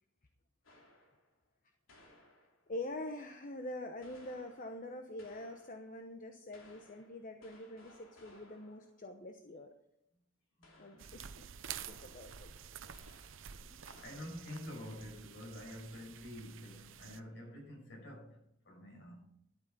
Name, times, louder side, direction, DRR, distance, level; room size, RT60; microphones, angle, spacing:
sound 1, 0.6-1.3 1.9-2.9 4.0-6.0 6.5-9.0 10.6-11.3 11.7-12.5 12.9-13.6 13.9-14.7, left 1 dB, 80° left, 2.9 m, -62 dB
voice 1, 2.7-9.7 10.8-11.3 11.9-12.5 13.6-13.8, left 1 dB, 40° left, 0.9 m, -45 dB
voice 2, 10.6-11.0 14.0-18.4 18.6-19.2, left 1 dB, 60° left, 5.7 m, -48 dB
sound 2, 11.0-17.2, right 8 dB, 70° right, 0.7 m, -50 dB
12.0 x 8.5 x 5.4 m
head